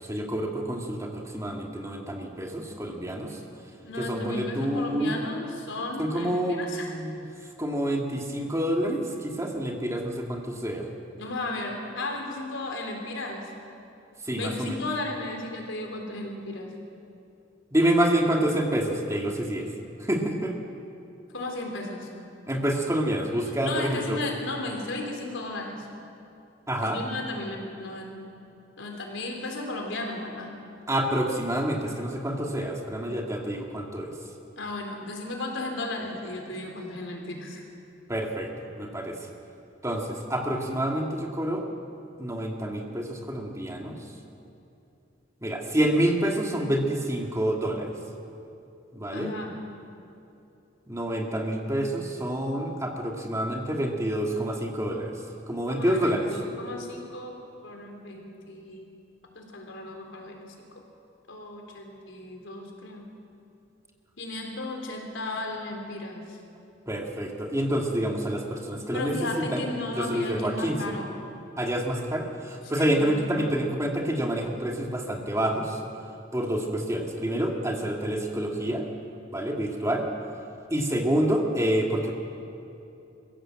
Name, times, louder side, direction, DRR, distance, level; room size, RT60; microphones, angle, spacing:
voice 1, 0.0-3.4 4.0-5.1 6.0-7.2 7.6-10.9 14.2-14.8 17.7-19.7 20.0-20.5 22.5-24.2 26.7-27.0 30.9-34.1 38.1-39.3 39.8-41.6 42.2-44.0 45.4-47.9 48.9-49.3 50.9-56.3 66.9-70.8 71.6-75.8 76.3-78.8 79.3-80.1 80.7-82.1, right 1 dB, 15° right, 0 dB, 2.3 m, -28 dB
voice 2, 3.8-6.9 11.2-13.5 14.4-16.7 21.3-22.1 23.6-25.9 26.8-28.2 28.8-30.5 34.6-37.6 49.1-49.5 55.7-58.8 59.3-60.4 60.7-60.8 61.3-63.1 64.2-66.4 68.9-71.1 72.7-73.5, left 2 dB, 90° left, 2 dB, 3.7 m, -35 dB
24.0 x 16.0 x 7.8 m, 2.8 s
head